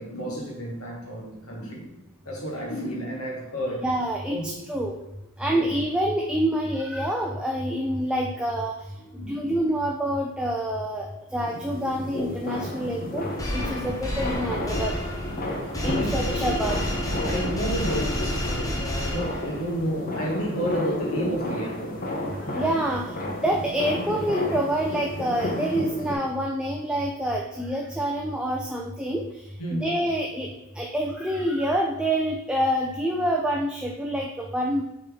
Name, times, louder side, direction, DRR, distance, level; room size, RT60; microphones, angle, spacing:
voice 1, 0.0-1.9 2.3-3.9 4.3-4.5 5.5-5.7 9.1-9.4 15.7-16.3 17.3-22.0 29.6-29.9, equal, 80° left, -1 dB, 1.9 m, -31 dB
voice 2, 3.8-4.4 4.7-5.0 5.4-8.7 9.2-13.3 13.5-14.9 15.8-16.8 22.5-29.3 29.7-34.8, right 1 dB, 5° right, -1 dB, 0.4 m, -27 dB
Fireworks Distant B, 11.4-26.1, left 1 dB, 40° left, 1.1 m, -32 dB
sound 1, 13.4-19.7, left 1 dB, 15° left, 0.9 m, -30 dB
6.7 x 4.3 x 3.8 m, 0.93 s
head